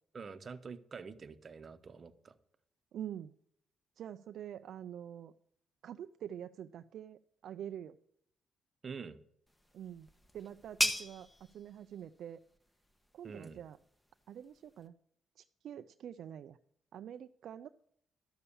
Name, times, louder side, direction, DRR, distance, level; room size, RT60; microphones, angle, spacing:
voice 1, 0.1-2.3 8.8-9.2 13.2-13.6, right 5 dB, 40° right, 10 dB, 0.9 m, -46 dB
voice 2, 2.9-3.3 4.0-5.3 5.8-8.0 9.7-10.1 10.3-11.3 11.5-12.4 13.1-13.8 14.3-14.9 15.4-16.6 16.9-17.7, right 10 dB, 70° right, 10 dB, 0.4 m, -46 dB
sound 1, 9.5-14.9, left 1 dB, 10° left, 1.3 m, -40 dB
12.0 x 6.9 x 7.0 m, 0.68 s
cardioid pair, 90°, 0 cm